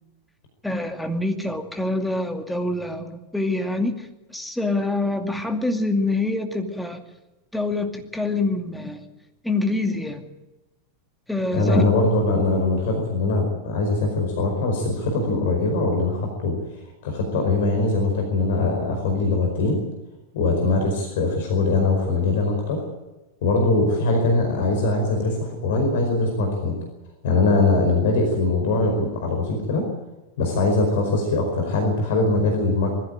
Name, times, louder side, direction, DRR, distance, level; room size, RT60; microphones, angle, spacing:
voice 1, 0.6-4.1 4.3-7.0 7.5-9.0 9.4-10.2 11.3-11.8, left 2 dB, 5° left, 4 dB, 2.4 m, -25 dB
voice 2, 11.5-16.6 17.0-19.8 20.3-22.8 23.4-26.8 27.2-29.8 30.4-33.0, left 2 dB, 55° left, 3 dB, 4.9 m, -22 dB
21.0 x 15.0 x 9.1 m, 1.0 s
figure-of-eight pair, 90°, 0 cm